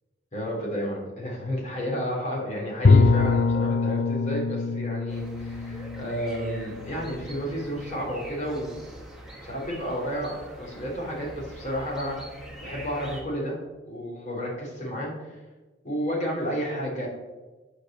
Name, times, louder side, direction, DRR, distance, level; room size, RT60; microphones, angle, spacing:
voice 1, 0.3-8.8 9.4-10.3 10.6-12.2 12.6-13.6 13.9-15.4 15.8-17.1, equal, 40° left, -3 dB, 3.2 m, -31 dB
Bowed string instrument, 2.8-7.7, left 4 dB, 65° left, 0.6 m, -24 dB
sound 1, 5.1-13.2, right 1 dB, ahead, 1.7 m, -44 dB
8.7 x 5.0 x 7.3 m, 1.2 s
head